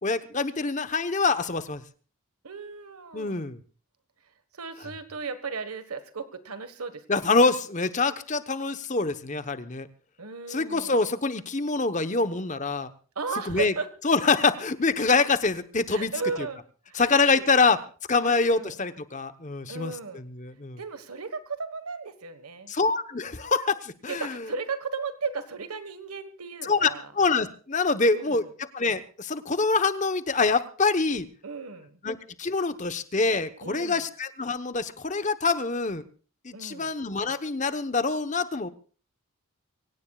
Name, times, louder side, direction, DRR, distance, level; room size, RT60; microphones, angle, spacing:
voice 1, 0.0-1.8 3.1-3.6 7.1-9.9 10.5-12.9 13.4-13.7 14.0-16.1 16.9-17.8 18.1-20.8 22.7-24.5 26.6-31.3 32.0-36.0 36.4-38.7, left 4 dB, 35° left, 12 dB, 1.0 m, -25 dB
voice 2, 2.4-3.5 4.5-7.0 10.2-10.9 13.1-13.9 15.9-16.6 16.9-17.0 17.3-17.4 18.2-18.7 19.7-20.2 20.8-22.7 24.1-27.1 28.1-28.5 31.4-32.0 33.6-34.0 36.5-36.9, right 4 dB, 85° right, 10 dB, 1.5 m, -35 dB
24.5 x 17.5 x 2.4 m, 0.38 s
head